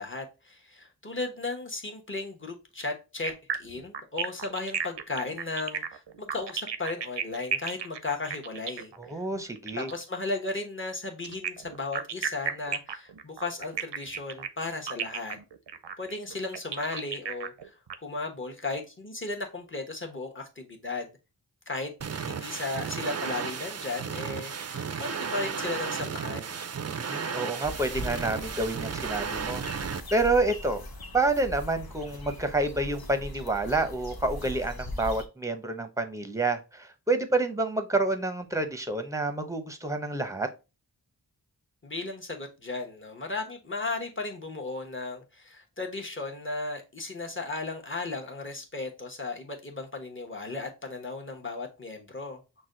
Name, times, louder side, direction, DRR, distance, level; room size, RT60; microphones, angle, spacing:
voice 1, 0.0-8.9 9.8-15.4 16.0-17.8 18.0-21.1 21.7-21.9 22.2-26.6 41.8-52.4, left 3 dB, 30° left, 1.1 m, -35 dB
sound 1, 3.2-10.0 11.2-17.9, right 7 dB, 85° right, 0.6 m, -34 dB
voice 2, 9.0-9.9 26.9-30.8 31.1-40.5, right 2 dB, 10° right, 0.7 m, -28 dB
sound 2, 22.0-30.0, right 6 dB, 40° right, 0.4 m, -34 dB
sound 3, 27.6-35.3, left 1 dB, 60° left, 0.8 m, -40 dB
6.0 x 2.3 x 3.8 m
wide cardioid pair, 60°, 41 cm